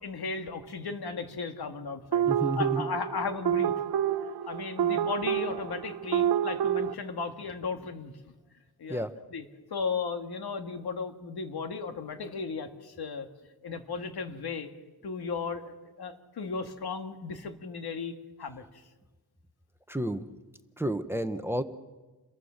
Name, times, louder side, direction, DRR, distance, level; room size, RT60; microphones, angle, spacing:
voice 1, 0.0-2.3 2.6-3.7 4.5-8.1 8.8-9.1 9.3-9.4 9.7-13.3 13.6-14.7 15.0-18.6, left 5 dB, 90° left, 6 dB, 2.1 m, -35 dB
sound 1, 2.1-6.9, right 9 dB, 75° right, 0.7 m, -28 dB
voice 2, 2.3-2.9 4.9-5.1 8.9-9.1 19.9-20.3 20.8-21.6, right 1 dB, 5° right, 10 dB, 0.8 m, -31 dB
29.0 x 22.0 x 6.5 m, 1.2 s
wide cardioid pair, 180°, 37 cm